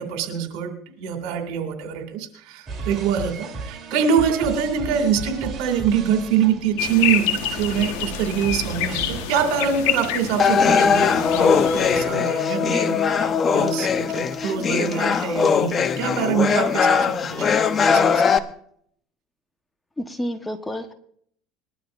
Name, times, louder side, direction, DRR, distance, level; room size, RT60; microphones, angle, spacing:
voice 1, 0.0-17.5 17.9-18.4, right 7 dB, 75° right, 5 dB, 2.6 m, -25 dB
sound 1, 2.7-9.3, right 4 dB, 35° right, 3.3 m, -35 dB
sound 2, 6.8-12.0, left 9 dB, 80° left, 1.4 m, -27 dB
sound 3, 10.4-18.4, left 6 dB, 35° left, 0.8 m, -20 dB
voice 2, 20.0-20.9, equal, 10° left, 7 dB, 1.2 m, -29 dB
20.5 x 12.0 x 2.6 m, 0.63 s
supercardioid pair, 105°, 0 cm